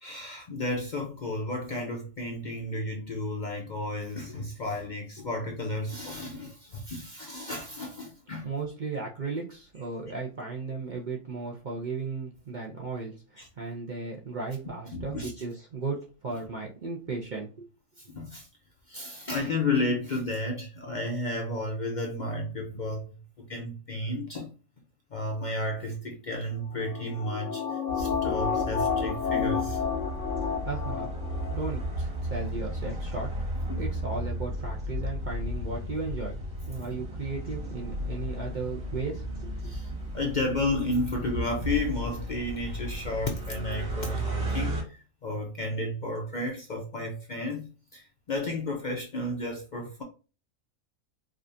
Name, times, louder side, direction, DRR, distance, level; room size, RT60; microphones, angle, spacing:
voice 1, 0.0-8.5 13.4-13.5 14.9-15.3 18.1-18.5 18.9-23.1 23.5-24.5 25.1-27.6 27.9-29.8 33.7-33.8 39.6-39.9 40.1-50.0, left 2 dB, 45° left, 0.6 m, -32 dB
voice 2, 8.4-17.7 30.6-31.1 31.5-33.3 33.8-39.7, right 4 dB, 50° right, 0.6 m, -35 dB
sound 1, 26.8-31.6 31.9-32.0, left 7 dB, 65° left, 1.0 m, -30 dB
sound 2, 27.9-44.8, equal, 70° right, 2.6 m, -34 dB
4.9 x 2.4 x 2.6 m
omnidirectional pair, 1.4 m